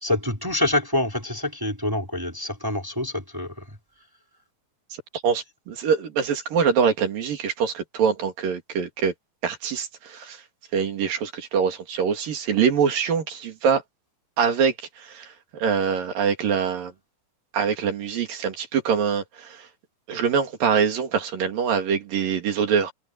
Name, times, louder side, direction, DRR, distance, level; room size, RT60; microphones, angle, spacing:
voice 1, 0.0-3.5, left 1 dB, 5° right, 3.7 m, -26 dB
voice 2, 5.2-9.1 9.4-10.4 10.7-13.8 14.4-15.3 15.6-16.9 17.5-19.7 20.1-22.9, right 6 dB, 80° right, 4.4 m, -24 dB
omnidirectional pair, 3.9 m